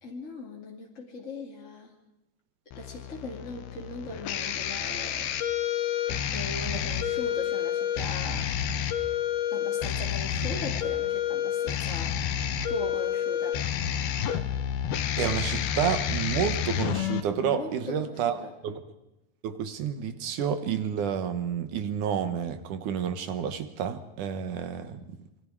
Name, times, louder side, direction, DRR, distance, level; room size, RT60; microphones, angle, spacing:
voice 1, 0.0-1.9 2.7-5.3 6.3-8.5 9.5-12.2 12.7-13.6 17.4-18.5, left 2 dB, 25° left, -2 dB, 2.1 m, -39 dB
sound 1, 2.7-17.2, left 10 dB, 80° left, 3.1 m, -29 dB
voice 2, 15.2-18.8 19.4-25.2, right 8 dB, 65° right, 10 dB, 2.5 m, -30 dB
27.0 x 23.5 x 4.9 m, 0.91 s
omnidirectional pair, 4.4 m